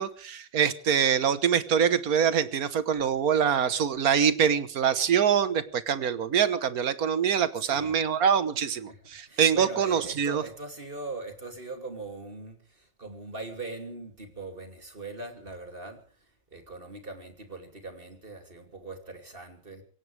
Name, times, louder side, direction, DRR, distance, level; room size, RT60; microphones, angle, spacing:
voice 1, 0.0-10.4, right 7 dB, 60° right, 1.5 m, -24 dB
voice 2, 7.6-7.9 8.9-9.0 9.3-16.0 16.5-19.8, right 3 dB, 30° right, 3.0 m, -39 dB
24.0 x 17.5 x 3.4 m
omnidirectional pair, 1.9 m